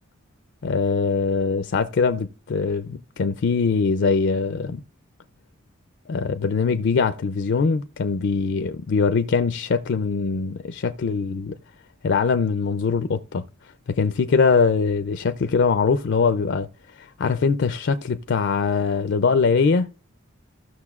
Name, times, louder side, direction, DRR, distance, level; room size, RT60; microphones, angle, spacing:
voice 1, 0.6-4.8 6.1-11.5 12.0-13.4 13.9-16.7 17.0-19.9, left 5 dB, 60° left, 0.4 m, -22 dB
15.0 x 6.3 x 2.4 m
head